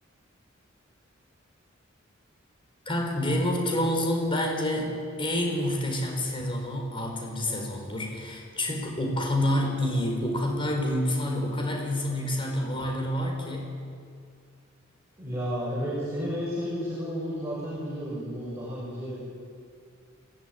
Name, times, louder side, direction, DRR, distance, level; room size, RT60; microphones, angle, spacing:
voice 1, 2.9-13.8, left 1 dB, 25° left, 1 dB, 4.5 m, -28 dB
voice 2, 15.2-19.2, equal, 15° right, -7 dB, 6.3 m, -32 dB
23.5 x 17.5 x 9.5 m, 2.3 s
head